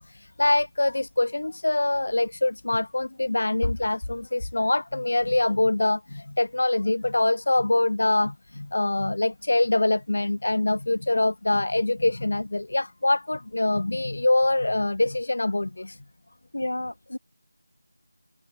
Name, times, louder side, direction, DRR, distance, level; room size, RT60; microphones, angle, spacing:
voice 1, 0.0-16.0, left 2 dB, 65° left, 0.6 m, -24 dB
voice 2, 16.5-17.2, left 1 dB, 80° left, 2.2 m, -31 dB
figure-of-eight pair, 170°, 0 cm